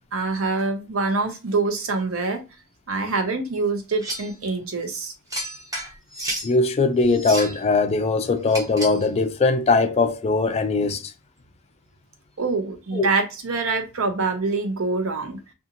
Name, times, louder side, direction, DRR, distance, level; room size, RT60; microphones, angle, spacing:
voice 1, 0.1-2.4 2.9-5.1 12.4-15.4, right 3 dB, 80° right, 0.7 m, -25 dB
sound 1, 4.0-4.4 5.3-6.5 7.1-7.6 8.5-9.1, right 1 dB, 15° right, 0.7 m, -31 dB
voice 2, 6.4-11.1 12.9-13.1, left 3 dB, 30° left, 0.3 m, -20 dB
2.6 x 2.4 x 2.8 m
head